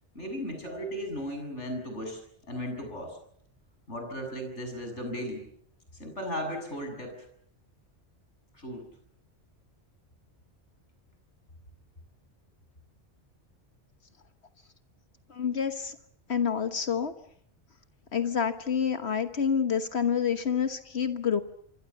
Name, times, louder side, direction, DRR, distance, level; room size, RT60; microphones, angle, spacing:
voice 1, 0.1-3.2 3.9-5.4 6.0-7.2 8.5-8.8, equal, 85° left, 4 dB, 7.7 m, -36 dB
voice 2, 15.3-16.0 16.3-17.1 18.1-21.4, left 7 dB, 65° left, 9 dB, 1.5 m, -28 dB
26.5 x 25.0 x 7.1 m, 0.65 s
omnidirectional pair, 1.2 m